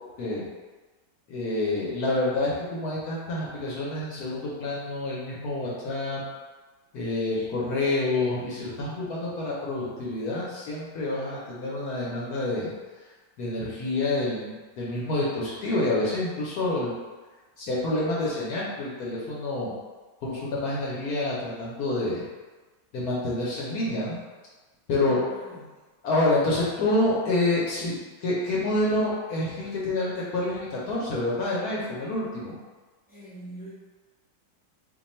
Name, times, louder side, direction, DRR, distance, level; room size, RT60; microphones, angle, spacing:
voice 1, 1.3-6.2 6.9-12.7 13.4-16.9 17.6-19.8 20.2-22.2 22.9-24.2 24.9-25.2 26.0-27.9 28.2-32.5, left 2 dB, 65° left, -6 dB, 1.1 m, -28 dB
voice 2, 25.0-25.7 33.1-33.7, right 1 dB, 5° right, -11 dB, 0.8 m, -43 dB
2.8 x 2.3 x 4.1 m, 1.3 s
omnidirectional pair, 1.9 m